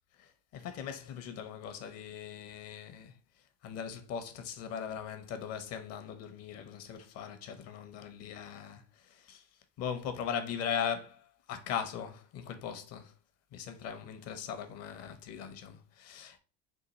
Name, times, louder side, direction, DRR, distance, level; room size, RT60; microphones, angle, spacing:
voice 1, 0.2-3.2 3.6-9.4 9.8-13.1 13.5-16.4, left 8 dB, 55° left, 0.9 m, -39 dB
3.8 x 2.6 x 4.0 m
hypercardioid pair, 85°, 29 cm